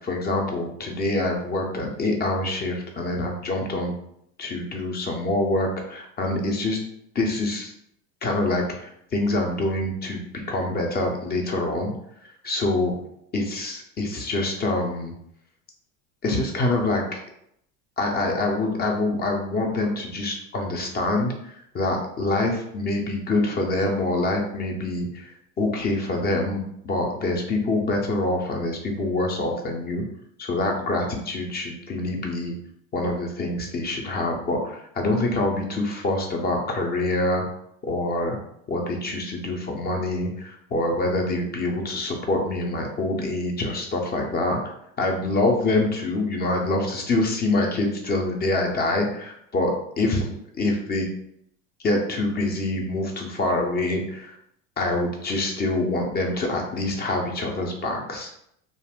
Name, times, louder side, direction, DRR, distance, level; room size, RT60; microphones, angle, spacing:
voice 1, 0.0-3.9 4.4-6.8 7.1-7.7 8.2-11.9 12.4-12.9 13.3-15.1 16.2-17.2 18.0-25.3 25.6-30.0 30.4-32.5 32.9-37.4 37.8-38.4 38.7-44.6 45.0-49.7 50.0-51.1 51.8-54.4 54.8-58.3, left 2 dB, 25° left, 2 dB, 0.6 m, -25 dB
2.5 x 2.0 x 3.5 m, 0.72 s
supercardioid pair, 100°, 39 cm